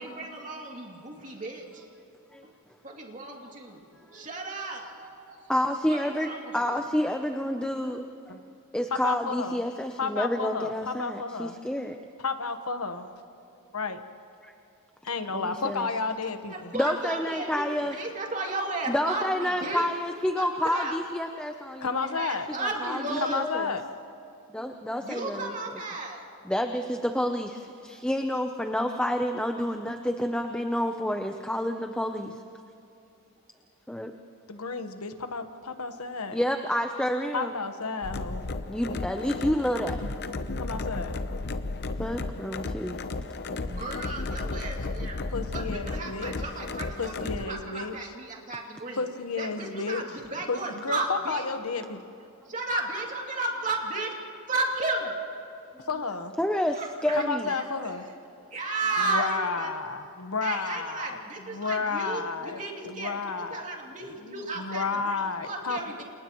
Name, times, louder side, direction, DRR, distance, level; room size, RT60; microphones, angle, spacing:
voice 1, 0.0-1.9 2.4-2.5 2.8-5.5 5.9-6.8 16.5-19.9 20.4-20.5 20.7-21.0 22.0-23.4 25.0-26.2 27.9-28.0 43.6-49.0 49.4-51.4 52.5-54.2 54.5-55.1 56.7-58.0 58.5-59.7 60.4-66.0, right 2 dB, 35° right, -1 dB, 2.7 m, -34 dB
voice 2, 5.5-6.3 6.5-8.4 8.7-12.0 14.4-14.5 15.3-15.9 16.7-17.9 18.9-22.2 22.6-23.4 24.5-25.5 26.5-32.4 33.9-34.1 36.3-37.5 38.7-40.0 42.0-43.0 55.7-55.9 56.4-57.5, equal, 5° left, 4 dB, 0.7 m, -29 dB
voice 3, 8.9-9.6 10.0-11.5 12.2-13.1 13.7-14.0 15.0-16.7 21.8-22.5 23.2-23.8 34.5-36.4 37.3-38.4 40.6-41.1 45.3-46.3 47.0-48.0 49.0-50.0 50.5-52.0 55.9-56.3 57.1-58.0 59.1-61.2 61.5-62.6 62.9-63.7 64.2-65.8, left 4 dB, 70° left, 7 dB, 1.3 m, -32 dB
sound 1, 38.0-47.5, left 3 dB, 50° left, 0.8 m, -34 dB
30.0 x 28.5 x 3.1 m, 2.7 s
head